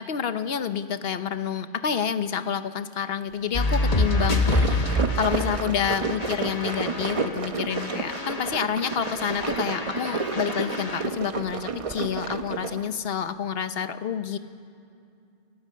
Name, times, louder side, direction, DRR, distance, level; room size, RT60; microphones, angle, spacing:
voice 1, 0.0-4.9 5.2-14.4, left 7 dB, 55° left, 11 dB, 0.9 m, -28 dB
sound 1, 3.5-7.4 7.7-11.0, left 2 dB, 30° left, 1.4 m, -27 dB
sound 2, 4.0-12.9, right 4 dB, 35° right, 0.7 m, -31 dB
25.0 x 17.0 x 7.5 m, 2.6 s
omnidirectional pair, 1.3 m